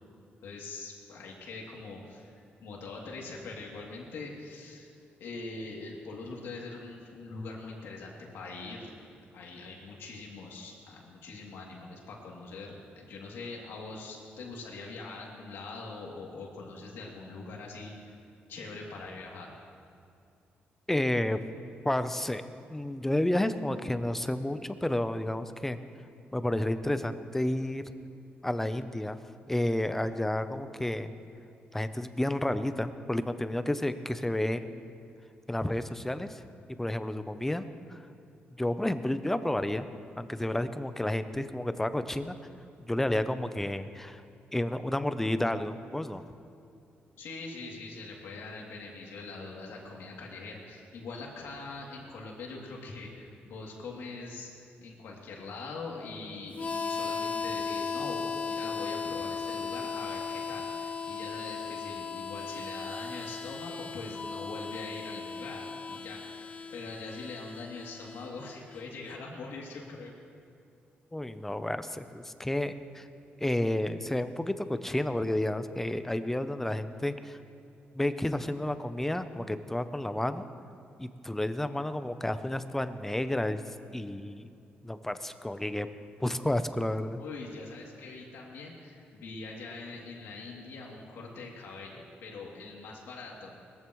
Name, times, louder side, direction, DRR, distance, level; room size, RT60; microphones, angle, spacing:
voice 1, 0.4-4.9 5.2-8.9 9.3-17.9 18.5-19.6 47.2-54.5 54.8-70.1 87.2-93.6, left 3 dB, 85° left, -2 dB, 2.8 m, -43 dB
voice 2, 20.9-21.4 21.8-22.4 22.7-25.8 26.3-27.8 28.4-29.2 29.5-31.1 31.7-34.8 35.5-36.4 36.8-37.6 37.9-38.0 38.6-39.9 40.2-42.4 42.9-44.2 44.5-46.2 71.1-73.1 73.4-77.4 77.9-80.5 81.0-83.6 83.9-84.5 84.8-85.9 86.2-87.2, left 1 dB, 10° left, 11 dB, 0.6 m, -31 dB
Harmonica, 56.5-69.2, left 5 dB, 35° left, 0.9 m, -37 dB
21.0 x 14.5 x 3.2 m, 2.4 s
cardioid pair, 115°, 4 cm